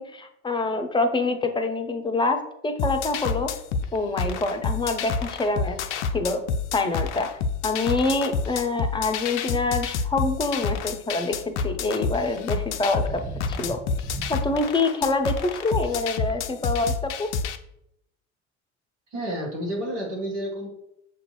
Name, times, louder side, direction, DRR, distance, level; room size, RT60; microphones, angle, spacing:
voice 1, 0.0-3.6 3.9-5.8 6.1-6.4 6.7-7.3 7.6-13.2 13.5-13.8 14.3-17.3, left 3 dB, 15° left, 7 dB, 0.6 m, -26 dB
sound 1, 2.8-17.6, left 5 dB, 80° left, 0.5 m, -29 dB
sound 2, 5.4-7.9 8.9-9.5 10.4-10.9 11.1-14.6, right 1 dB, 15° right, 1.0 m, -39 dB
voice 2, 19.1-20.7, equal, 80° right, -2 dB, 1.7 m, -30 dB
6.7 x 2.5 x 3.1 m, 0.79 s
hypercardioid pair, 70°, 35 cm